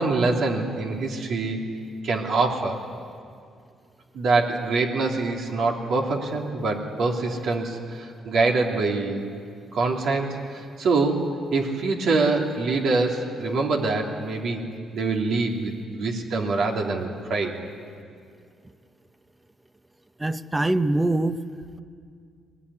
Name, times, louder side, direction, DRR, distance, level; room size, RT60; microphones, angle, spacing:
voice 1, 0.0-1.6 2.0-2.8 4.1-9.3 9.7-14.6 14.9-17.5, right 3 dB, 70° right, 1 dB, 3.1 m, -25 dB
voice 2, 20.2-21.4, right 2 dB, 15° right, 11 dB, 0.9 m, -23 dB
21.0 x 20.0 x 9.9 m, 2.2 s
cardioid pair, 90°, 0 cm